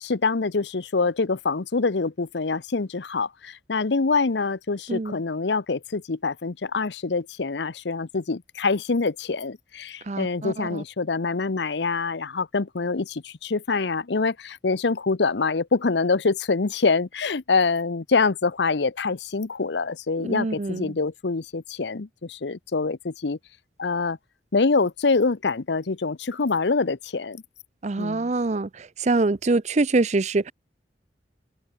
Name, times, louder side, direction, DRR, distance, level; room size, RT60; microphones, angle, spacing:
voice 1, 0.0-23.4 23.8-24.2 24.5-27.4 28.0-28.3, left 4 dB, 80° left, 0.8 m, -25 dB
voice 2, 10.1-10.8 20.2-20.9 27.8-30.5, right 3 dB, 40° right, 0.6 m, -25 dB
head